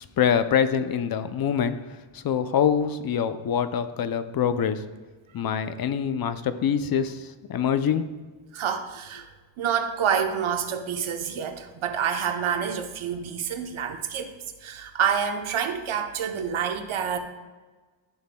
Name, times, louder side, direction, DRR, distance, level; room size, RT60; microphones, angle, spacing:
voice 1, 0.0-4.8 5.3-8.1, left 8 dB, 50° left, 11 dB, 0.5 m, -25 dB
voice 2, 8.5-9.3 9.6-14.3 14.6-17.2, right 7 dB, 75° right, 6 dB, 0.9 m, -27 dB
13.0 x 5.9 x 2.2 m, 1.3 s
wide cardioid pair, 140°, 50 cm